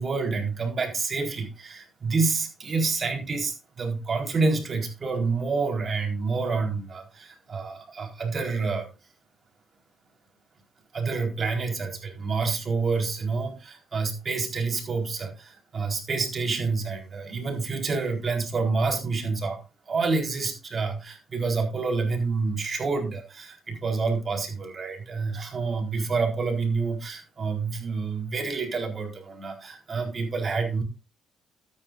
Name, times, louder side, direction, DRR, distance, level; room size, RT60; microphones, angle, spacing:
voice 1, 0.0-8.9 10.9-19.6 19.9-30.8, right 4 dB, 40° right, 3 dB, 4.1 m, -28 dB
13.0 x 9.6 x 2.5 m, 0.27 s
cardioid pair, 90°, 0 cm